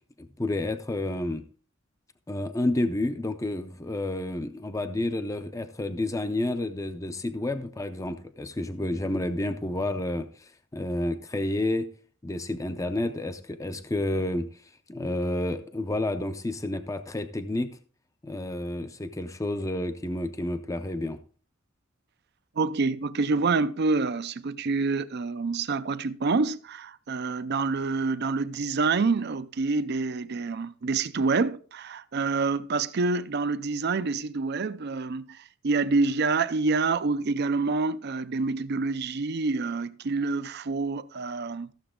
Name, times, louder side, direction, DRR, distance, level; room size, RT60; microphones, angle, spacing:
voice 1, 0.2-1.4 2.3-11.9 12.2-14.5 14.9-17.7 18.2-21.2, left 1 dB, 15° left, 0.5 m, -30 dB
voice 2, 22.6-41.7, right 4 dB, 50° right, 0.5 m, -27 dB
14.5 x 6.9 x 3.7 m
head